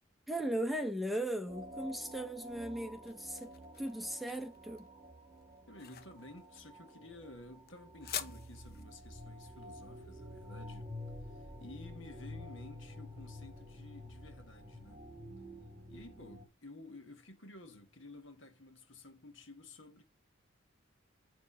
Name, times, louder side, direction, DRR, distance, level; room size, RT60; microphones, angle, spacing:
voice 1, 0.3-3.5 3.8-4.9, right 1 dB, ahead, 0.7 m, -37 dB
sound 1, 1.5-16.5, left 1 dB, 25° right, 2.1 m, -49 dB
sound 2, 2.5-11.6, left 9 dB, 50° left, 0.8 m, -48 dB
voice 2, 5.7-10.9 11.2-15.1 15.9-20.0, left 2 dB, 65° left, 1.5 m, -53 dB
9.0 x 3.4 x 5.5 m
head